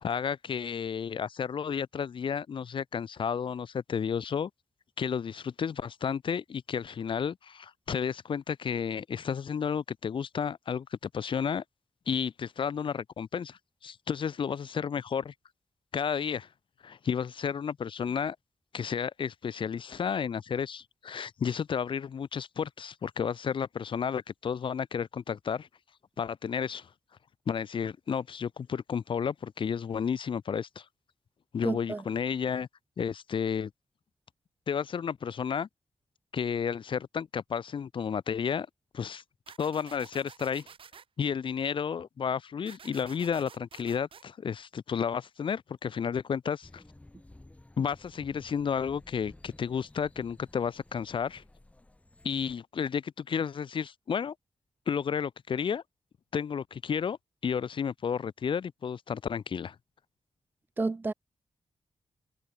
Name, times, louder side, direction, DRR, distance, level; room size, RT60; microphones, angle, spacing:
voice 1, 0.0-4.5 5.0-11.6 12.1-15.3 15.9-16.5 16.8-18.4 18.7-25.7 26.2-26.9 27.5-30.8 31.5-32.7 33.0-33.7 34.7-35.7 36.3-38.7 38.9-39.2 39.6-40.7 41.2-46.8 47.8-51.4 52.2-54.3 54.9-55.8 56.3-57.2 57.4-59.7, left 7 dB, 55° left, 1.2 m, -32 dB
voice 2, 31.6-32.0 60.8-61.1, right 3 dB, 20° right, 0.4 m, -30 dB
sound 1, 39.5-41.0 42.7-44.2, right 7 dB, 60° right, 4.9 m, -51 dB
sound 2, 46.6-52.5, left 1 dB, 15° left, 5.6 m, -54 dB
wide cardioid pair, 120°, 10 cm